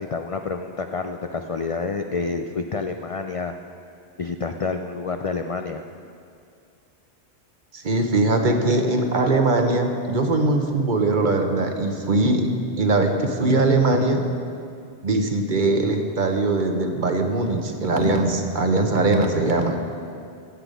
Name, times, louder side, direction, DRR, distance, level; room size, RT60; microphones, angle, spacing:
voice 1, 0.0-3.5 4.2-5.8, left 4 dB, 50° left, 6 dB, 0.4 m, -28 dB
voice 2, 7.7-12.5 12.8-14.2 15.0-19.8, right 2 dB, 50° right, 4 dB, 1.1 m, -21 dB
16.0 x 8.0 x 5.2 m, 2.4 s
omnidirectional pair, 1.1 m